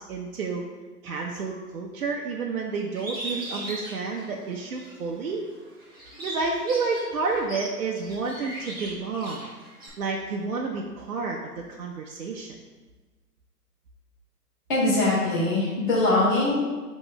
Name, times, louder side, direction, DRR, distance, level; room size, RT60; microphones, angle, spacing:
voice 1, 0.1-0.7 1.0-5.5 6.2-9.5 10.0-12.5, right 4 dB, 60° right, -1 dB, 0.6 m, -30 dB
Bird, 3.0-4.9 5.4-9.9, right 1 dB, 15° right, 0.5 m, -38 dB
voice 2, 14.7-16.6, left 2 dB, 30° left, -7 dB, 0.8 m, -22 dB
4.1 x 3.0 x 3.8 m, 1.3 s
hypercardioid pair, 145°, 49 cm